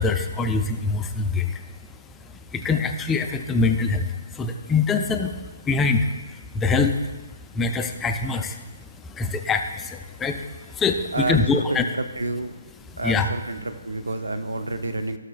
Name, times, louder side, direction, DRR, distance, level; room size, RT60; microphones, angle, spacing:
voice 1, 0.0-1.8 2.1-7.1 7.5-11.9 12.9-13.3, left 4 dB, 10° left, 6 dB, 0.4 m, -24 dB
voice 2, 11.1-11.9 12.2-12.5 13.0-15.2, right 2 dB, 70° right, 9 dB, 0.6 m, -29 dB
15.5 x 6.5 x 2.3 m, 1.2 s
figure-of-eight pair, 135°, 0 cm